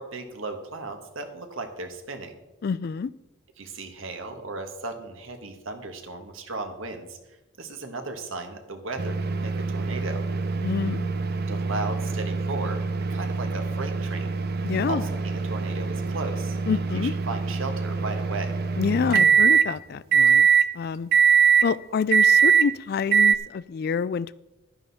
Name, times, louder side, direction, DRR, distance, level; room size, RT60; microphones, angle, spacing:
voice 1, 0.0-2.4 3.6-7.2 7.6-10.2 11.4-12.8 13.1-14.4 14.7-18.6, right 3 dB, 80° right, 5 dB, 1.6 m, -36 dB
voice 2, 2.6-3.1 10.6-11.1 14.6-15.0 16.7-17.1 18.8-20.5 20.7-21.1 21.6-24.4, left 6 dB, 50° left, 18 dB, 0.3 m, -27 dB
sound 1, 9.0-19.7 20.1-20.7 21.1-21.7 22.1-22.7 23.1-23.3, right 6 dB, 50° right, 0.6 m, -22 dB
11.5 x 10.5 x 4.2 m, 1.0 s
head